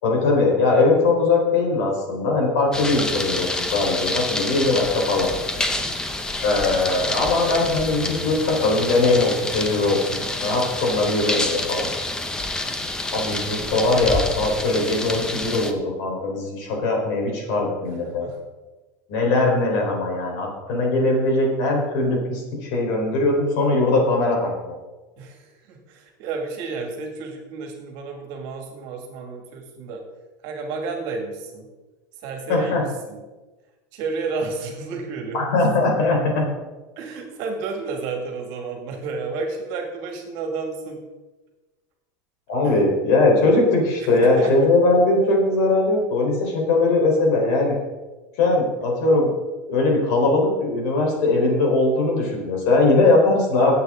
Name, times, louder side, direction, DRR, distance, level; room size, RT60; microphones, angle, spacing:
voice 1, 0.0-5.3 6.4-11.9 13.1-18.3 19.1-24.8 32.5-32.8 35.3-36.5 42.5-47.8 48.4-49.3 49.7-53.7, left 2 dB, 60° left, 0 dB, 4.1 m, -20 dB
sound 1, 2.7-15.7, left 2 dB, 5° left, 0.7 m, -28 dB
voice 2, 5.6-6.0 17.8-18.4 25.2-30.0 30.4-31.7 32.2-33.2 33.9-35.4 37.0-41.0 42.6-42.8 44.0-44.7, right 4 dB, 50° right, 3 dB, 2.2 m, -32 dB
17.5 x 8.2 x 3.8 m, 1.2 s
supercardioid pair, 175°, 10 cm